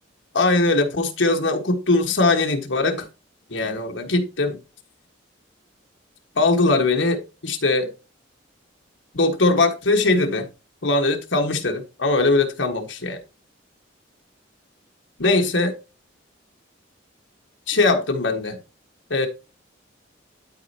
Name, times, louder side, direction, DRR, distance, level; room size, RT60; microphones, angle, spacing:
voice 1, 0.3-3.1 3.5-4.6 6.3-7.9 9.1-10.5 10.8-13.2 15.2-15.7 17.7-18.6 19.1-19.3, left 2 dB, 75° left, 1.4 m, -20 dB
12.5 x 4.4 x 2.8 m
head